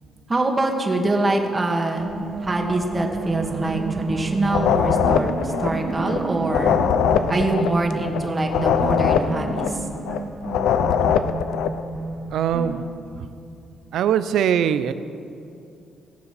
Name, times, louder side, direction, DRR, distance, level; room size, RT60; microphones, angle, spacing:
voice 1, 0.3-2.2 2.4-6.8 7.3-9.6, right 2 dB, 25° right, 2 dB, 1.8 m, -24 dB
sound 1, 2.0-12.8, right 4 dB, 55° right, 1.4 m, -30 dB
sound 2, 4.4-11.8, left 8 dB, 85° left, 0.5 m, -22 dB
voice 2, 12.3-12.9 13.2-13.3 13.9-14.9, right 9 dB, 75° right, 12 dB, 0.6 m, -21 dB
19.5 x 7.0 x 6.0 m, 2.5 s
cardioid pair, 90°, 0 cm